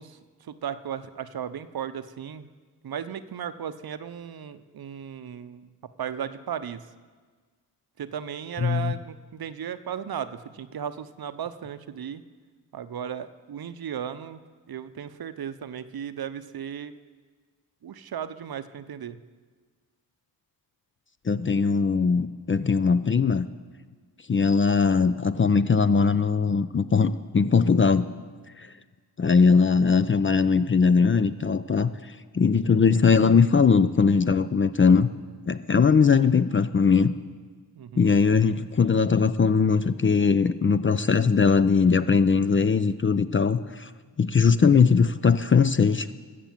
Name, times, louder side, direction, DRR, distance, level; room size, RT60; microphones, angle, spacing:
voice 1, 0.0-2.5 2.8-5.7 6.0-6.8 8.0-12.2 12.7-14.4 14.7-16.9 17.8-19.2 37.8-38.1, right 8 dB, 55° right, 12 dB, 0.7 m, -35 dB
voice 2, 8.6-8.9 21.3-23.5 24.3-28.1 28.6-28.7 29.2-31.9 32.3-35.1 35.5-37.2 38.0-43.9 44.2-46.1, left 5 dB, 30° left, 13 dB, 0.5 m, -20 dB
14.5 x 6.8 x 7.5 m, 1.5 s
cardioid pair, 50°, 43 cm